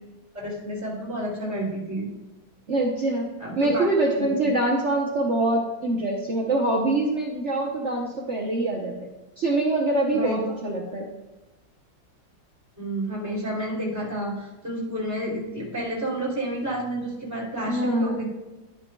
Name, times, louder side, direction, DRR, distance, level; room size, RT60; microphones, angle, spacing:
voice 1, 0.3-2.1 3.4-3.8 4.2-4.3 10.1-10.6 12.8-18.3, right 1 dB, 10° right, -5 dB, 2.7 m, -30 dB
voice 2, 2.7-3.3 3.6-8.9 9.4-11.1 17.7-18.2, right 2 dB, 50° right, -1 dB, 1.0 m, -24 dB
12.0 x 8.3 x 2.3 m, 1.1 s
omnidirectional pair, 2.2 m